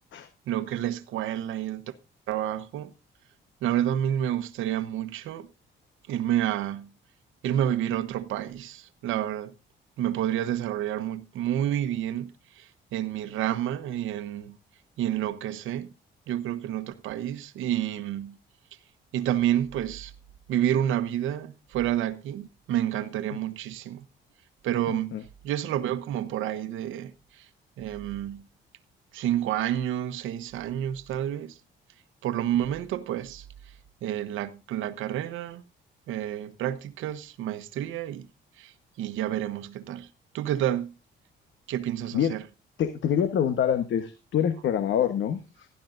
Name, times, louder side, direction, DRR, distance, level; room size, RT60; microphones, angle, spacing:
voice 1, 0.5-1.9 2.3-2.9 3.6-5.5 6.1-6.9 7.4-9.5 10.0-14.6 15.0-15.9 16.3-18.4 19.1-20.1 20.5-24.0 24.6-25.2 25.4-27.5 27.8-28.5 29.1-31.6 32.2-33.5 34.0-35.6 36.1-38.3 38.6-40.1 40.3-40.9 41.7-42.4, right 11 dB, 90° right, 1.0 m, -29 dB
voice 2, 24.9-25.2 42.1-42.3 42.8-45.7, left 9 dB, 70° left, 1.2 m, -26 dB
18.0 x 11.5 x 2.6 m
cardioid pair, 90°, 20 cm